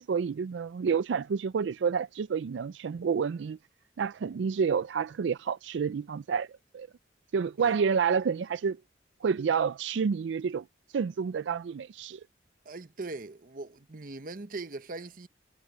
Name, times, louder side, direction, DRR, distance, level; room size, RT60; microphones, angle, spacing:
voice 1, 0.0-3.6 4.0-6.5 6.7-6.9 7.3-8.8 9.2-10.6 10.9-12.2, right 6 dB, 80° right, 0.4 m, -29 dB
voice 2, 12.6-15.3, right 3 dB, 50° right, 0.9 m, -40 dB
head